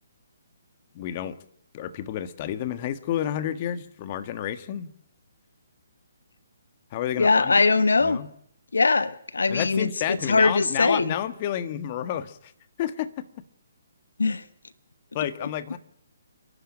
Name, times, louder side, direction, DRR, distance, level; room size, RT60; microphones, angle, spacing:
voice 1, 0.9-1.4 1.7-4.9 6.9-7.6 8.0-8.3 9.5-12.5 12.8-13.2 15.1-15.8, left 11 dB, 35° left, 11 dB, 1.6 m, -30 dB
voice 2, 7.2-8.2 8.7-9.9 10.3-11.1 14.2-14.4, left 3 dB, 75° left, 14 dB, 1.2 m, -21 dB
27.5 x 12.0 x 8.9 m, 0.69 s
figure-of-eight pair, 140°, 0 cm